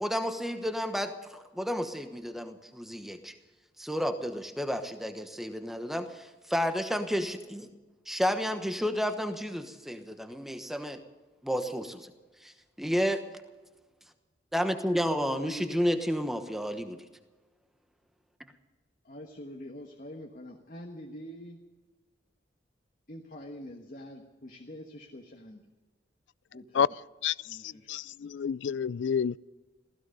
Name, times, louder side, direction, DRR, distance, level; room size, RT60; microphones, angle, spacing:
voice 1, 0.0-3.3 3.8-7.7 8.1-11.0 11.4-12.1 12.4-12.5 12.8-13.2 14.5-17.0, equal, ahead, 1.1 m, -31 dB
voice 2, 14.9-15.8 19.0-21.6 23.1-25.6 26.5-26.9 27.5-27.9, left 1 dB, 45° left, 1.3 m, -45 dB
voice 3, 27.6-29.4, left 7 dB, 75° left, 0.4 m, -29 dB
16.5 x 15.5 x 5.4 m
head